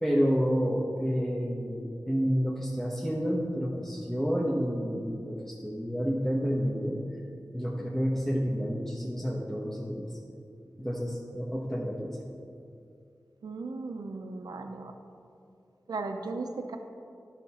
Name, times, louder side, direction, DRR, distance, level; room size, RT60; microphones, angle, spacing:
voice 1, 0.0-7.0 7.5-10.1 10.8-12.2, equal, 5° left, -4 dB, 1.0 m, -29 dB
voice 2, 13.4-14.9 15.9-16.8, right 3 dB, 90° right, 5 dB, 0.5 m, -36 dB
11.5 x 5.8 x 4.2 m, 2.5 s
wide cardioid pair, 70°, 7 cm